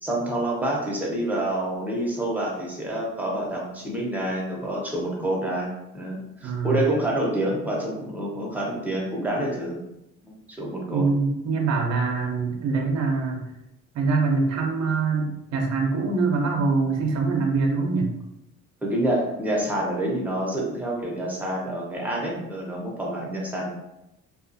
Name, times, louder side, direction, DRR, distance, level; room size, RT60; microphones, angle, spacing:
voice 1, 0.0-9.8 10.2-11.1 18.8-23.7, right 1 dB, 5° right, -3 dB, 0.8 m, -27 dB
voice 2, 6.4-6.8 10.9-13.5 13.9-18.1, right 4 dB, 60° right, 2 dB, 0.6 m, -24 dB
2.4 x 2.4 x 2.5 m, 0.89 s
cardioid pair, 90°, 30 cm